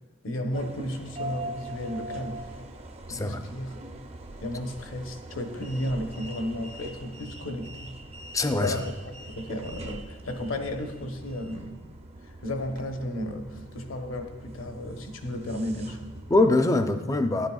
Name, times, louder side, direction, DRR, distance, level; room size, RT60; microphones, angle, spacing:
voice 1, 0.2-2.5 3.1-3.7 4.4-7.9 8.6-11.8 12.2-16.1, left 1 dB, 70° left, 4 dB, 0.9 m, -33 dB
sound 1, 0.5-16.5, right 1 dB, 30° right, 0.6 m, -42 dB
voice 2, 3.1-3.4 8.3-8.8 16.3-17.5, left 2 dB, 15° left, 8 dB, 0.4 m, -23 dB
11.5 x 10.0 x 2.3 m, 1.4 s
head